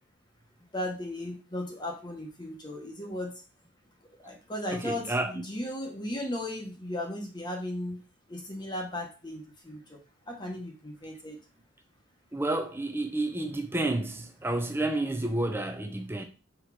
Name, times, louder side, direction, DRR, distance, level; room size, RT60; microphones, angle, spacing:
voice 1, 0.7-3.4 4.2-8.0 8.3-10.0 10.3-11.4 15.0-15.3, left 1 dB, 20° left, 1.2 m, -36 dB
voice 2, 4.8-5.3 12.3-16.2, right 2 dB, 10° right, 0.8 m, -30 dB
6.1 x 4.8 x 4.8 m
head